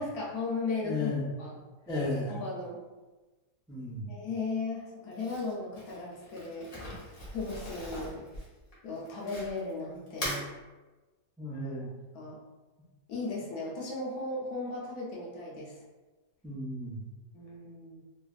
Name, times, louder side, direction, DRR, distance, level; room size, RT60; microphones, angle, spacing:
voice 1, 0.0-1.1 1.4-1.6 2.3-2.8 4.1-8.2 8.8-10.5 12.1-12.4 13.1-15.8 17.3-18.0, left 3 dB, 70° left, -4 dB, 1.2 m, -36 dB
voice 2, 0.8-1.3 1.9-2.4 3.7-4.1 11.4-11.9 16.4-17.0, left 2 dB, 5° left, -9 dB, 0.4 m, -34 dB
Crumpling crinkling, 5.1-9.7 10.1-10.5, left 1 dB, 40° left, 0.9 m, -40 dB
3.2 x 2.4 x 2.4 m, 1.2 s
omnidirectional pair, 1.7 m